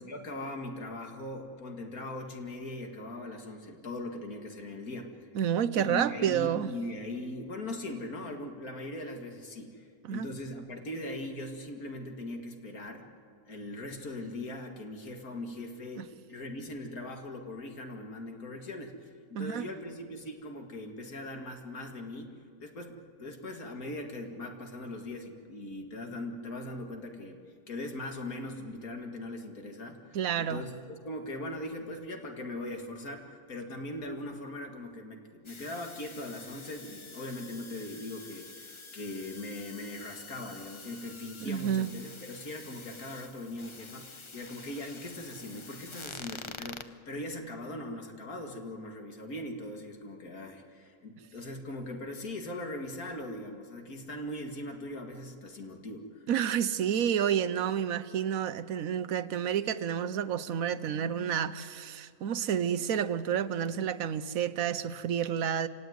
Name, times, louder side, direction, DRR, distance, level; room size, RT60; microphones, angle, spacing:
voice 1, 0.0-5.3 5.7-13.1 13.5-19.0 19.3-56.2, left 1 dB, 70° left, 3 dB, 2.6 m, -40 dB
voice 2, 5.3-6.7 10.0-10.3 16.0-16.1 19.3-19.7 30.1-30.6 41.4-41.9 56.3-65.7, right 9 dB, 70° right, 13 dB, 1.2 m, -30 dB
sound 1, 35.4-46.8, left 4 dB, 30° left, 0.6 m, -47 dB
27.5 x 17.5 x 9.5 m, 2.3 s
omnidirectional pair, 1.6 m